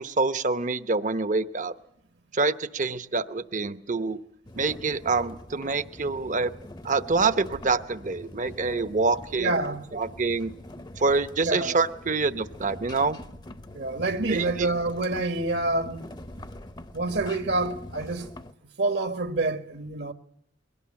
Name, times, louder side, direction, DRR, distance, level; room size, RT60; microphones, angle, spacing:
voice 1, 0.0-1.7 2.3-4.2 4.5-6.5 6.8-9.5 9.9-10.5 11.0-13.2 14.3-14.7, right 4 dB, 45° right, 0.8 m, -26 dB
sound 1, 4.5-18.5, left 1 dB, 25° left, 0.8 m, -43 dB
voice 2, 9.4-9.9 11.4-11.8 13.7-16.0 16.9-18.3 18.8-20.1, right 2 dB, 65° right, 1.5 m, -27 dB
22.0 x 17.5 x 8.7 m
head